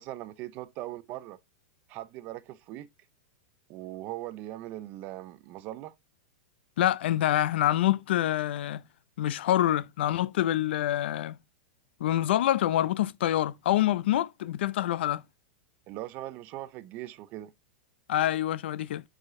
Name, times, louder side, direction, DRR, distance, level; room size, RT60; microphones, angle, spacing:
voice 1, 0.0-1.4 1.9-2.9 3.7-5.9 15.9-17.5, right 15 dB, 25° right, 0.5 m, -40 dB
voice 2, 6.8-8.8 9.2-11.4 12.0-15.2 18.1-19.0, left 13 dB, 60° left, 0.5 m, -26 dB
8.6 x 4.9 x 3.6 m
supercardioid pair, 175°, 7 cm